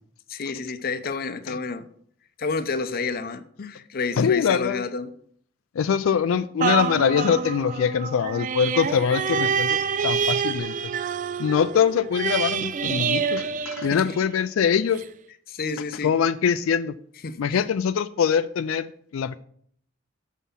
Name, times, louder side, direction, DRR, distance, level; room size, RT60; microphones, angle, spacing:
voice 1, 0.3-1.9 2.4-5.1 13.9-14.2 15.5-16.1 17.2-17.6, left 4 dB, 50° left, 0.6 m, -30 dB
voice 2, 4.2-4.8 5.8-10.7 11.4-15.0 16.0-16.9 17.4-19.4, left 7 dB, 85° left, 0.4 m, -23 dB
sound 1, 6.6-14.4 15.0-15.1, right 7 dB, 40° right, 0.4 m, -27 dB
7.3 x 5.6 x 5.5 m
head